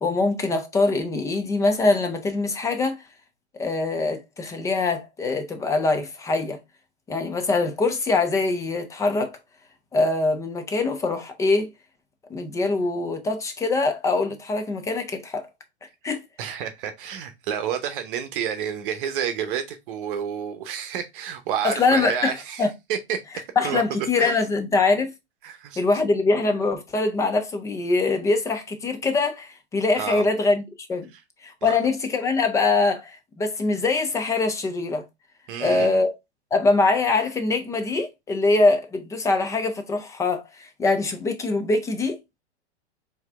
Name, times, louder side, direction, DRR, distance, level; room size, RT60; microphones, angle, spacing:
voice 1, 0.0-3.0 3.5-6.6 7.1-9.4 9.9-11.7 12.3-15.5 16.0-16.2 21.6-22.7 23.6-25.1 25.8-30.6 30.9-31.1 31.4-35.0 35.6-36.1 36.5-42.2, left 3 dB, 10° left, 0.4 m, -23 dB
voice 2, 16.4-23.2 23.6-23.8 24.2-24.4 25.4-25.8 29.9-30.3 31.1-31.2 31.6-31.8 35.5-36.0, right 8 dB, 50° right, 0.8 m, -30 dB
4.5 x 2.8 x 3.4 m
hypercardioid pair, 115°, 35 cm